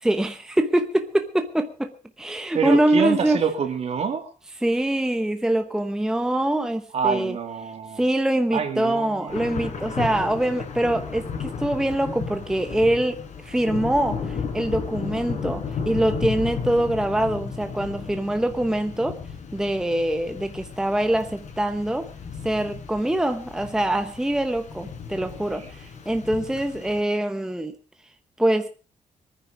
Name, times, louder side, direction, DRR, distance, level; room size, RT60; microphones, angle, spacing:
voice 1, 0.0-1.9 2.2-3.4 4.6-7.4 7.9-19.2 19.5-22.1 22.4-27.7 28.4-28.7, right 1 dB, 5° right, 7 dB, 0.9 m, -24 dB
voice 2, 2.5-4.3 6.9-8.0 8.5-9.7, right 6 dB, 55° right, 6 dB, 2.5 m, -26 dB
Thunder / Rain, 9.3-27.0, left 5 dB, 65° left, 4.2 m, -34 dB
23.0 x 9.7 x 4.9 m, 0.37 s
wide cardioid pair, 155°, 13 cm